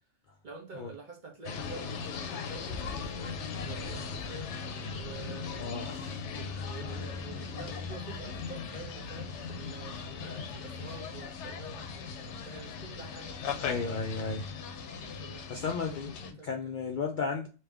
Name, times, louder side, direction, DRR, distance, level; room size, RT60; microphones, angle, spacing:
voice 1, 0.4-4.6 4.9-5.9 6.3-14.0 15.2-16.5, right 4 dB, 45° right, 1.2 m, -48 dB
sound 1, 1.4-16.3, left 5 dB, 80° left, 0.9 m, -38 dB
voice 2, 5.6-6.2 10.2-10.5 13.6-14.5 15.5-16.1 16.4-17.5, left 5 dB, 60° left, 0.5 m, -34 dB
3.4 x 2.8 x 3.3 m
omnidirectional pair, 1.2 m